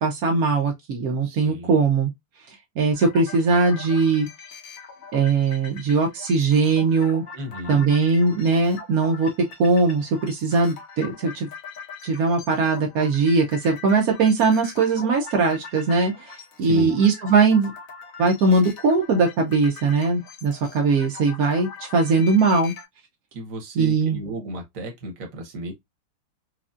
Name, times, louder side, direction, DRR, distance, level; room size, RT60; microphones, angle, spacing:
voice 1, 0.0-2.1 2.5-4.3 5.1-7.2 7.7-9.3 9.6-11.5 12.0-17.7 18.2-22.7 23.8-24.2, right 4 dB, 70° right, 0.8 m, -20 dB
voice 2, 1.2-1.8 7.3-7.8 16.6-16.9 23.3-25.7, right 1 dB, 50° right, 1.1 m, -33 dB
sound 1, 2.9-22.8, left 5 dB, 45° left, 1.2 m, -42 dB
4.7 x 2.5 x 2.4 m
omnidirectional pair, 2.4 m